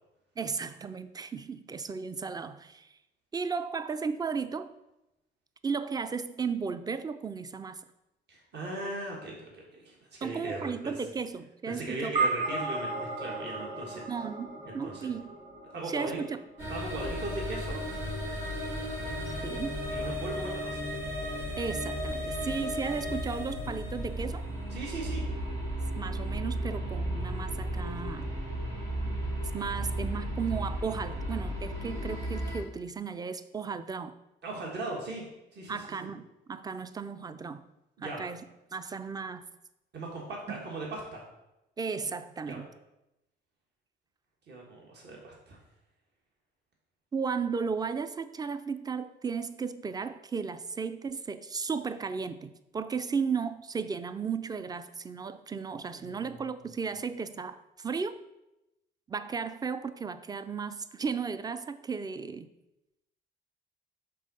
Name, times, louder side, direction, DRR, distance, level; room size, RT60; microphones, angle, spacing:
voice 1, 0.4-2.9 3.3-4.7 5.6-7.8 10.2-12.1 14.1-15.3 15.9-16.4 19.3-19.8 21.6-24.4 26.0-28.3 29.5-34.1 35.7-37.6 38.0-38.4 38.7-39.4 40.5-40.6 41.8-42.7 47.1-58.2 59.1-62.5, right 5 dB, 20° right, 12 dB, 0.4 m, -35 dB
voice 2, 8.3-10.9 11.7-14.0 14.6-15.1 15.7-16.2 16.7-17.8 19.9-20.8 24.7-25.2 34.4-35.2 35.5-36.1 38.0-38.2 39.9-41.2 42.5-42.6 44.5-45.6 55.9-56.2, right 2 dB, 60° right, -2 dB, 1.5 m, -38 dB
sound 1, 12.2-16.7, right 3 dB, 40° right, 2.3 m, -34 dB
sound 2, 16.6-32.6, equal, 80° right, 2.0 m, -34 dB
5.4 x 3.6 x 5.4 m, 0.92 s
cardioid pair, 90°, 20 cm